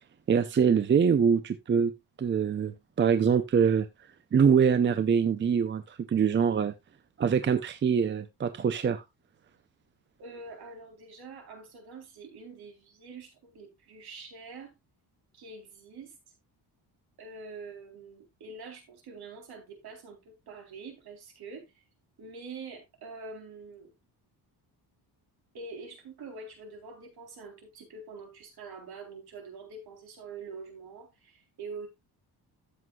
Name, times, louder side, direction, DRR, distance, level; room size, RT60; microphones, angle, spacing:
voice 1, 0.3-1.9 2.2-3.9 4.3-6.7 7.2-9.0, right 7 dB, 30° right, 0.6 m, -24 dB
voice 2, 10.2-14.7 15.3-16.2 17.2-21.8 22.2-23.9 25.5-31.9, right 4 dB, 70° right, 3.9 m, -45 dB
12.5 x 7.9 x 2.4 m
cardioid pair, 155°, 40 cm